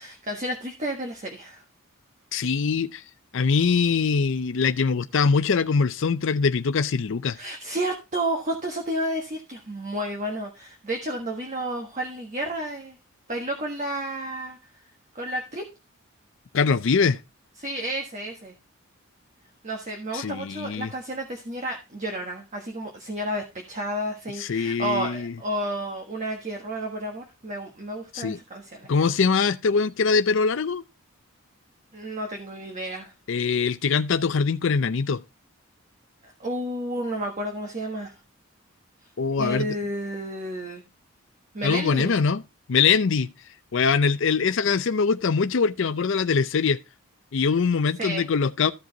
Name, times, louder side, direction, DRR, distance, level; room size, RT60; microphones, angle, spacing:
voice 1, 0.0-1.6 7.3-13.0 13.3-14.6 15.1-15.6 17.6-18.5 19.6-28.9 31.9-33.1 36.2-38.2 39.4-40.8 41.5-42.1 48.0-48.2, right 1 dB, 35° right, 1.4 m, -31 dB
voice 2, 2.3-3.0 3.3-7.4 16.5-17.2 20.1-20.9 24.4-25.3 28.1-28.4 28.9-30.8 33.3-35.2 39.2-39.7 41.6-42.4 42.7-43.3 43.7-46.8 47.3-48.7, left 5 dB, 60° left, 0.5 m, -23 dB
14.0 x 5.1 x 3.9 m
head